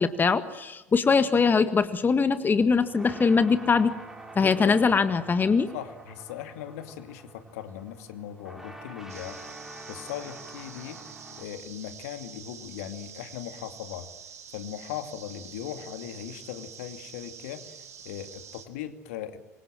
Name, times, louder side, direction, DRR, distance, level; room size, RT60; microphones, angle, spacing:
voice 1, 0.0-3.9 4.4-5.7, left 5 dB, 25° left, 11 dB, 1.8 m, -22 dB
sound 1, 2.4-11.5, right 2 dB, 5° right, 5.7 m, -46 dB
voice 2, 4.4-4.9 5.7-9.4 9.9-11.0 11.4-14.1 14.5-17.8 18.0-19.4, left 10 dB, 65° left, 9 dB, 2.5 m, -39 dB
sound 2, 9.1-18.6, right 7 dB, 80° right, 2.6 m, -47 dB
27.5 x 24.5 x 7.7 m, 1.1 s
figure-of-eight pair, 70°, 8 cm